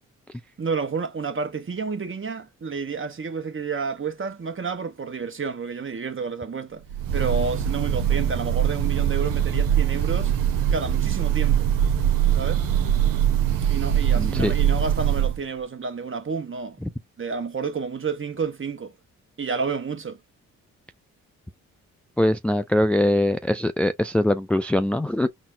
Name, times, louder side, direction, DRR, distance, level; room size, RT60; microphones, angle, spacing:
voice 1, 0.6-6.8 7.1-10.3 10.7-11.7 12.3-12.6 13.7-18.9 19.4-20.2, right 5 dB, 35° right, 1.2 m, -30 dB
Breathing / Bird, 6.9-15.4, right 10 dB, 80° right, 0.8 m, -22 dB
voice 2, 14.2-14.5 22.2-25.3, left 1 dB, 5° left, 0.4 m, -22 dB
4.2 x 2.1 x 3.7 m
supercardioid pair, 50°, 33 cm